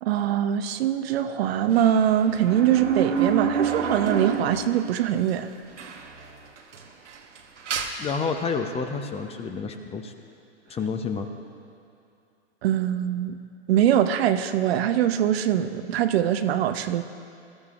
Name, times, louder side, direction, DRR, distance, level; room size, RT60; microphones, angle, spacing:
voice 1, 0.0-5.5 12.6-13.4 13.7-17.0, right 10 dB, 60° right, 9 dB, 0.8 m, -23 dB
sound 1, 1.8-5.0 5.3-5.4 5.8-6.3 6.6-7.9, right 7 dB, 85° right, 1.3 m, -28 dB
voice 2, 8.0-10.1 10.7-11.3, left 5 dB, 20° left, 6 dB, 0.7 m, -29 dB
20.5 x 13.5 x 2.5 m, 2.6 s
hypercardioid pair, 110°, 35 cm